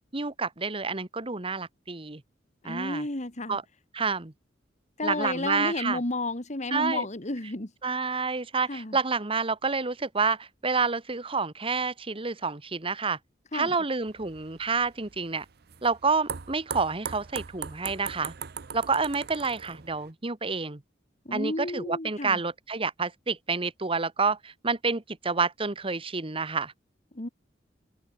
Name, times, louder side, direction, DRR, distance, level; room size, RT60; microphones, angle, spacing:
voice 1, 0.1-2.2 2.6-3.0 3.5-3.6 3.9-4.3 5.0-6.0 6.7-7.1 7.8-13.2 13.5-15.4 15.8-18.3 18.7-20.8 21.3-26.7, right 4 dB, 30° right, 1.4 m, -29 dB
voice 2, 2.6-3.6 5.0-7.7 8.7-9.0 13.5-13.7 21.3-22.4 27.1-27.3, left 2 dB, 40° left, 2.2 m, -32 dB
sound 1, 14.1-20.1, right 7 dB, 60° right, 0.7 m, -40 dB
head